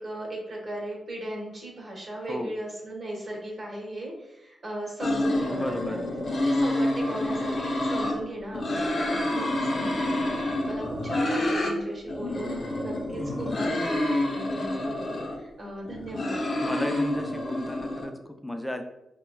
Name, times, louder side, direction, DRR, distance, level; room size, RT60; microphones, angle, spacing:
voice 1, 0.0-6.0 6.4-16.4, right 1 dB, 45° right, -2 dB, 1.1 m, -37 dB
sound 1, 5.0-8.2 8.5-11.7 12.1-15.4 15.9-18.1, left 1 dB, 55° left, 0.6 m, -28 dB
voice 2, 5.5-6.1 9.3-9.5 16.6-18.8, left 1 dB, 5° left, 5 dB, 0.4 m, -33 dB
4.5 x 2.1 x 2.2 m, 0.88 s
cardioid pair, 70°, 0 cm